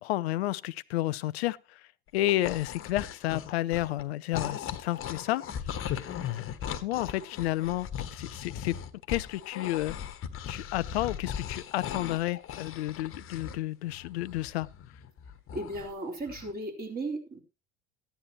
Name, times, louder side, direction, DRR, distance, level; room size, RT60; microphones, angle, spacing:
voice 1, 0.0-1.8 2.1-5.4 5.8-5.9 6.3-6.4 6.8-8.8 9.1-10.0 10.5-14.7, left 16 dB, 80° left, 0.5 m, -31 dB
sound 1, 2.1-4.0 4.3-13.6 13.8-15.9 16.3-16.5, left 9 dB, 40° left, 1.3 m, -38 dB
voice 2, 15.5-17.4, right 2 dB, 30° right, 4.2 m, -35 dB
14.5 x 10.5 x 3.0 m
hypercardioid pair, 80°, 31 cm